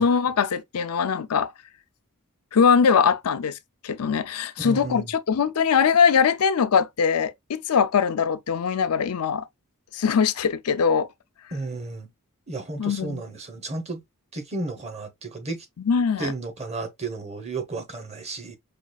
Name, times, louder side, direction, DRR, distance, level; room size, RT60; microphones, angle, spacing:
voice 1, 0.0-1.5 2.5-3.6 3.8-9.4 9.9-11.1 12.8-13.2 15.9-16.3, left 6 dB, 80° left, 0.5 m, -21 dB
voice 2, 4.6-5.1 11.5-12.1 12.5-14.0 14.3-15.6 16.2-18.6, right 3 dB, 30° right, 0.9 m, -33 dB
5.0 x 2.4 x 2.3 m
head